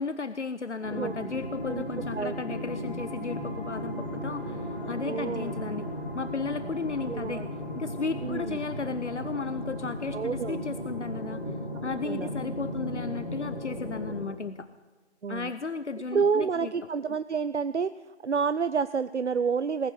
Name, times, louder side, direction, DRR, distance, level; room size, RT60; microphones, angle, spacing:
voice 1, 0.0-5.9 6.2-11.4 11.8-14.7 15.3-16.7, left 4 dB, 80° left, 12 dB, 0.7 m, -34 dB
sound 1, 0.8-14.2, equal, 45° left, 4.9 m, -35 dB
voice 2, 5.1-5.5 7.1-7.4 8.2-8.6 10.1-10.6 12.0-12.3 15.2-15.5 16.1-17.9 18.2-19.9, right 5 dB, 80° right, 13 dB, 0.6 m, -28 dB
19.5 x 7.7 x 7.9 m, 1.3 s
figure-of-eight pair, 170°, 34 cm